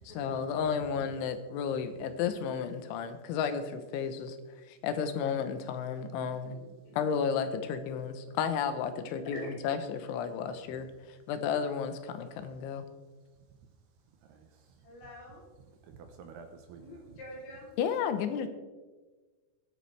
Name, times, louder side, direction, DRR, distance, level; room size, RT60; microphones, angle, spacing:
voice 1, 0.0-4.4 4.7-6.6 6.9-9.4 9.6-10.9 11.3-12.8 17.8-18.5, left 7 dB, 85° left, 9 dB, 3.3 m, -32 dB
voice 2, 6.4-7.0 9.3-9.5 14.8-15.4 16.8-17.7, left 1 dB, 65° left, -4 dB, 5.4 m, -46 dB
voice 3, 14.3-14.8 15.8-17.0, right 5 dB, 75° right, 5 dB, 2.6 m, -51 dB
22.0 x 8.1 x 3.3 m, 1.3 s
omnidirectional pair, 5.3 m